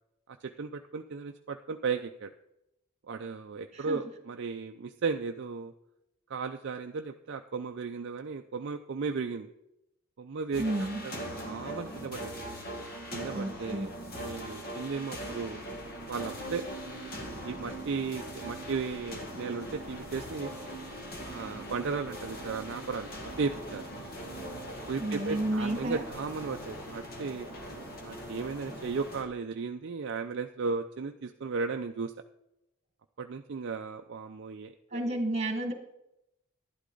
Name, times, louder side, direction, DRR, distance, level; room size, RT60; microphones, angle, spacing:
voice 1, 0.3-2.3 3.1-5.7 6.3-9.5 10.2-10.7 11.0-12.3 13.1-13.9 14.1-15.6 16.1-20.5 21.2-23.1 23.4-23.8 24.9-27.5 28.0-32.1 33.2-35.2, right 4 dB, 55° right, 6 dB, 0.4 m, -35 dB
sound 1, 10.5-29.2, equal, 45° left, 1.8 m, -41 dB
voice 2, 10.6-11.0 13.3-13.9 25.0-26.0 34.9-35.7, right 1 dB, 30° right, 4 dB, 1.8 m, -31 dB
11.5 x 11.0 x 3.9 m, 0.86 s
head